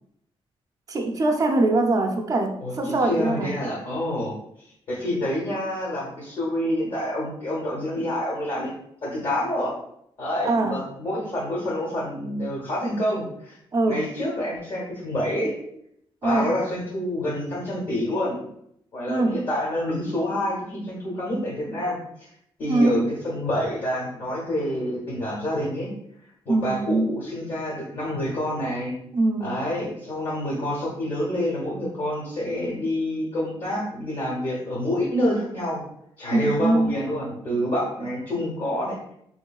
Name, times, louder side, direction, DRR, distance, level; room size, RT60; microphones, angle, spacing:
voice 1, 0.9-3.5 10.4-10.8 13.7-14.0 16.2-16.5 19.1-19.4 22.7-23.0 26.5-27.2 29.1-29.6 36.3-37.0, right 2 dB, 35° right, 4 dB, 0.4 m, -22 dB
voice 2, 2.6-4.3 4.9-8.7 9.0-9.7 10.2-13.6 13.8-15.5 16.2-18.4 18.9-22.3 22.6-25.9 26.5-29.0 29.4-35.8 36.2-39.1, left 1 dB, 50° left, -5 dB, 0.9 m, -27 dB
3.6 x 3.0 x 2.3 m, 0.74 s
wide cardioid pair, 165°, 11 cm